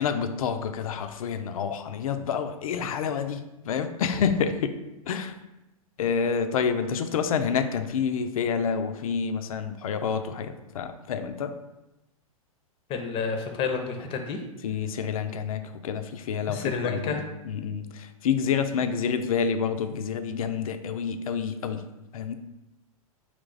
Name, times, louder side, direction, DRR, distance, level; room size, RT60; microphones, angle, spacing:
voice 1, 0.0-4.7 5.1-5.3 6.0-11.5 14.6-17.2 17.5-21.8 22.1-22.3, left 6 dB, 70° left, 8 dB, 0.5 m, -28 dB
voice 2, 12.9-14.4 16.5-17.2, left 5 dB, 30° left, 5 dB, 0.6 m, -30 dB
3.4 x 2.9 x 3.9 m, 0.96 s
hypercardioid pair, 110°, 19 cm